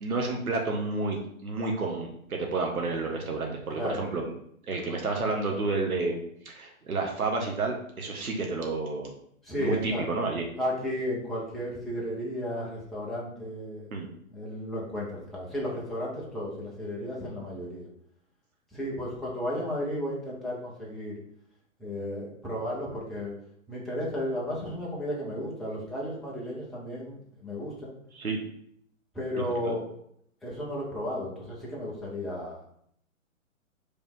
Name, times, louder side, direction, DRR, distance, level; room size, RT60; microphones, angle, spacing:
voice 1, 0.0-4.3 4.7-6.2 6.4-9.1 9.6-10.4 13.9-14.1 28.1-28.4 29.4-29.7, right 3 dB, 90° right, 1 dB, 1.5 m, -30 dB
voice 2, 9.4-10.1 10.6-13.9 14.3-17.9 18.7-21.2 21.8-23.3 23.7-28.0 29.1-29.8 30.4-32.6, equal, ahead, -7 dB, 0.6 m, -33 dB
5.1 x 3.5 x 5.3 m, 0.69 s
hypercardioid pair, 150°, 42 cm